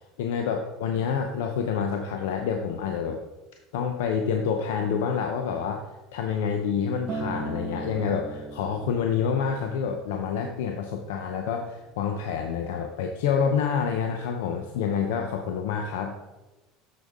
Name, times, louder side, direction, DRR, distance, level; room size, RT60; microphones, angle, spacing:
voice 1, 0.2-3.2 3.7-5.8 6.1-16.2, left 6 dB, 85° left, 4 dB, 0.7 m, -28 dB
Acoustic guitar, 7.1-11.4 12.2-12.3, right 3 dB, 45° right, 1.4 m, -38 dB
6.9 x 6.5 x 3.6 m, 1.1 s
supercardioid pair, 115°, 0 cm